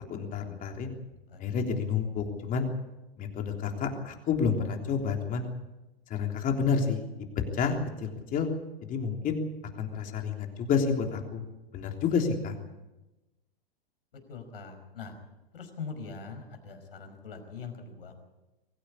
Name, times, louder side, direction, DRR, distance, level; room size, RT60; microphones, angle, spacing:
voice 1, 0.1-0.9 1.4-2.7 3.2-5.5 6.1-7.0 7.5-8.5 8.9-9.4 9.8-11.4 11.7-12.6, left 6 dB, 30° left, 3 dB, 3.4 m, -29 dB
voice 2, 1.3-1.8 14.1-15.2 15.5-18.2, left 5 dB, 70° left, 6 dB, 5.3 m, -43 dB
24.0 x 15.5 x 8.5 m, 1.0 s
hypercardioid pair, 110°, 29 cm